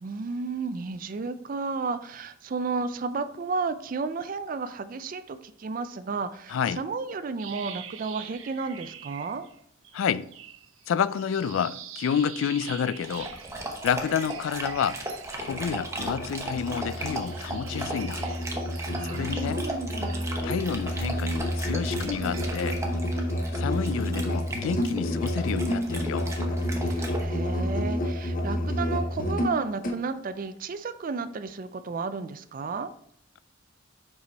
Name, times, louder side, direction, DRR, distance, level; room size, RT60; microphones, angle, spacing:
voice 1, 0.0-9.5 18.9-20.3 26.9-32.9, right 4 dB, 45° right, 0.4 m, -33 dB
voice 2, 6.5-6.8 9.9-10.3 10.9-13.3 13.8-15.0 15.4-18.2 19.0-19.6 20.4-22.8 23.6-26.4, left 7 dB, 85° left, 0.3 m, -29 dB
sound 1, 7.4-9.6 9.8-16.1 16.5-21.0 21.4-22.7, right 9 dB, 90° right, 0.6 m, -45 dB
Dog, 13.0-27.2, right 1 dB, 15° right, 0.8 m, -37 dB
Musical instrument, 15.4-30.0, equal, 45° left, 0.7 m, -30 dB
5.1 x 4.9 x 4.0 m
head